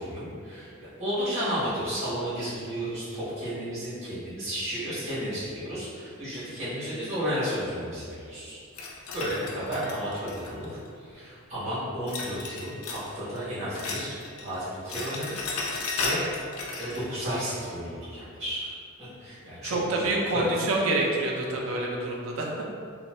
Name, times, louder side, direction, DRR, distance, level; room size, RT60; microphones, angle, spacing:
voice 1, 0.0-8.6 9.1-10.7 11.0-16.2 16.8-20.4, equal, 35° right, -13 dB, 1.2 m, -33 dB
sound 1, 8.7-10.9 12.1-13.1 13.4-14.5 14.7-17.0, left 3 dB, 75° left, 0.4 m, -34 dB
voice 2, 19.6-22.5, right 2 dB, 65° right, -1 dB, 0.4 m, -27 dB
2.5 x 2.2 x 3.1 m, 2.3 s
head